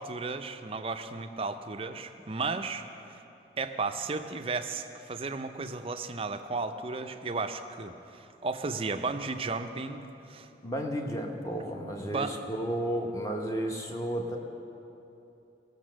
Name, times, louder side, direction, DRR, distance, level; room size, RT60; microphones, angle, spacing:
voice 1, 0.0-2.8 3.1-3.2 3.6-10.5 12.0-12.4, right 3 dB, 30° right, 7 dB, 0.5 m, -34 dB
voice 2, 10.6-14.4, equal, 20° left, 2 dB, 1.0 m, -33 dB
18.0 x 6.7 x 6.3 m, 2.9 s
head